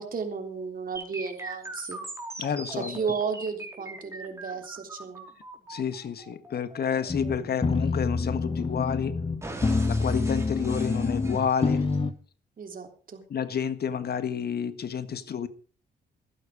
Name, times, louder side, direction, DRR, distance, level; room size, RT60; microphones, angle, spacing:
voice 1, 0.0-2.0 2.7-5.3 12.6-13.2, right 5 dB, 50° right, 5 dB, 3.4 m, -33 dB
sound 1, 1.0-8.9 9.4-12.0, right 2 dB, 15° right, 4.6 m, -41 dB
voice 2, 2.4-3.0 5.7-9.1 9.9-11.8 13.3-15.5, left 7 dB, 60° left, 12 dB, 1.6 m, -30 dB
sound 2, 7.1-12.1, left 3 dB, 25° left, 1.3 m, -27 dB
14.0 x 12.0 x 5.0 m, 0.39 s
cardioid pair, 85°, 19 cm